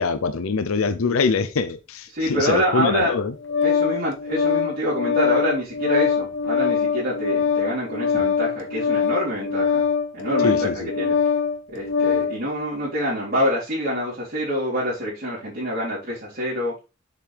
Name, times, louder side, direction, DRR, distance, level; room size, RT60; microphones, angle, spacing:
voice 1, 0.0-3.3 10.4-10.9, left 4 dB, 90° left, 0.6 m, -24 dB
voice 2, 2.1-3.2 3.6-9.8 10.1-11.2 11.7-16.7, equal, 45° right, 3.9 m, -26 dB
Organ, 3.0-12.4, left 6 dB, 60° left, 1.4 m, -23 dB
7.5 x 6.8 x 3.4 m
head